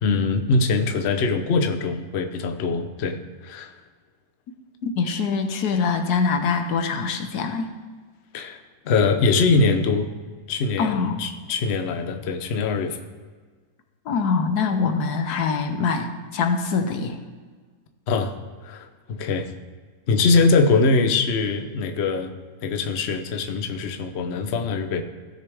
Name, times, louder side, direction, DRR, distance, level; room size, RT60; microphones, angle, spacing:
voice 1, 0.0-3.7 8.3-8.6 8.8-10.1 10.5-13.0 18.1-18.4 18.6-19.5 20.1-22.3 22.6-25.0, left 4 dB, 50° left, 6 dB, 0.9 m, -22 dB
voice 2, 5.0-7.7 10.8-11.2 14.1-17.2, left 5 dB, 85° left, 7 dB, 1.4 m, -24 dB
16.0 x 6.6 x 3.4 m, 1.5 s
omnidirectional pair, 1.6 m